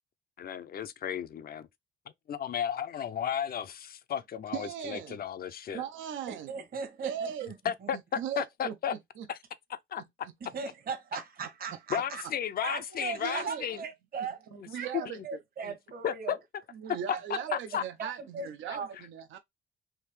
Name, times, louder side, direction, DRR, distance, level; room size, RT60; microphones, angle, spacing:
voice 1, 0.4-1.7 2.3-5.8 7.6-8.9 9.3-9.4 9.7-10.3 11.9-13.8 15.1-15.2 15.6-15.7 16.0-16.4 17.3-17.8, left 9 dB, 50° left, 0.5 m, -34 dB
voice 2, 4.5-5.2 5.7-6.5 7.0-7.5 8.2-9.3 10.0-10.1 13.2-13.6 14.5-15.2 16.7-19.4, right 8 dB, 80° right, 0.5 m, -38 dB
voice 3, 6.3-7.1 7.4-7.5 10.4-12.2 12.6-14.5 14.7-16.4 16.9-17.2 17.5-17.6 18.0-18.9, right 5 dB, 50° right, 1.0 m, -38 dB
3.4 x 2.7 x 3.1 m
cardioid pair, 90°, 20 cm